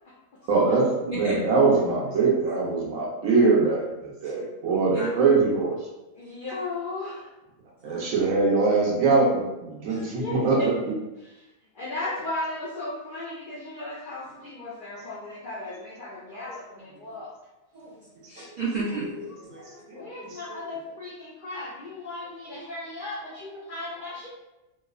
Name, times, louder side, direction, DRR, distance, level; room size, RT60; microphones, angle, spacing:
voice 1, 0.5-5.8 7.8-10.7 16.3-16.4 19.5-19.6 20.3-20.6 22.5-22.6, right 4 dB, 75° right, -3 dB, 1.0 m, -23 dB
voice 2, 1.1-1.4 4.2-4.3 4.9-5.1 7.8-8.1 9.9-10.0 17.7-17.9 18.3-20.0, right 3 dB, 60° right, -9 dB, 0.4 m, -33 dB
voice 3, 6.2-7.3 10.1-10.7 11.8-17.3 19.9-24.3, left 2 dB, 80° left, -6 dB, 0.4 m, -35 dB
2.9 x 2.0 x 2.3 m, 0.99 s
omnidirectional pair, 1.5 m